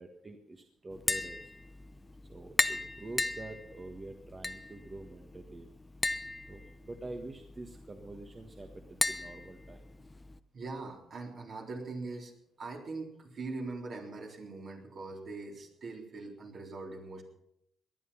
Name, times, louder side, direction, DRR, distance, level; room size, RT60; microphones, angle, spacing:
voice 1, 0.0-1.5 2.3-5.7 6.5-10.1, right 2 dB, 25° right, 4 dB, 1.5 m, -46 dB
Tap, 0.9-10.4, left 3 dB, 20° left, 0.7 m, -37 dB
voice 2, 10.5-17.2, right 3 dB, 55° right, 1 dB, 3.8 m, -42 dB
18.5 x 11.0 x 5.7 m, 0.75 s
cardioid pair, 90°, 0 cm